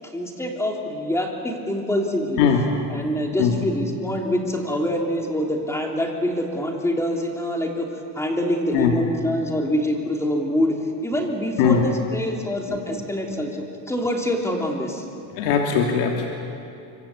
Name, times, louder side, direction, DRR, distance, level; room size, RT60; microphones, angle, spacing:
voice 1, 0.1-2.4 2.9-7.9 8.1-10.7 11.0-15.0, equal, 5° left, 1 dB, 3.2 m, -25 dB
voice 2, 15.3-16.3, left 7 dB, 80° left, 1 dB, 3.1 m, -20 dB
25.5 x 25.0 x 8.6 m, 2.7 s
cardioid pair, 150°, 46 cm